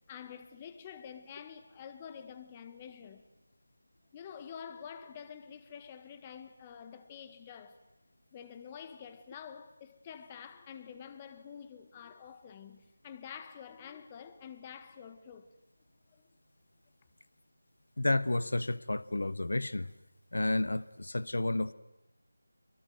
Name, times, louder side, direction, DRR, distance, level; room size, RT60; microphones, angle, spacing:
voice 1, 0.1-3.2 4.1-7.8 8.3-15.5 16.1-16.2, left 7 dB, 20° left, 1.5 m, -48 dB
voice 2, 18.0-19.9 20.3-21.7, left 2 dB, 70° left, 1.2 m, -31 dB
26.5 x 23.0 x 9.3 m
figure-of-eight pair, 165°, 0 cm